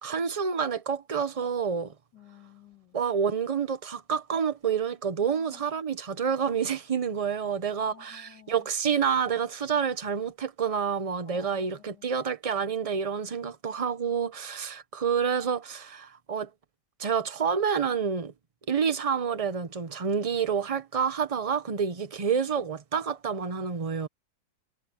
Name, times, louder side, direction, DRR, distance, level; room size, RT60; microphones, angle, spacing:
voice 1, 0.0-1.9 2.9-16.5 17.0-18.3 18.7-24.1, right 6 dB, 30° right, 0.8 m, -28 dB
voice 2, 2.1-3.0 5.3-5.6 7.3-8.7 11.3-12.1, left 6 dB, 90° left, 4.4 m, -52 dB
omnidirectional pair, 1.8 m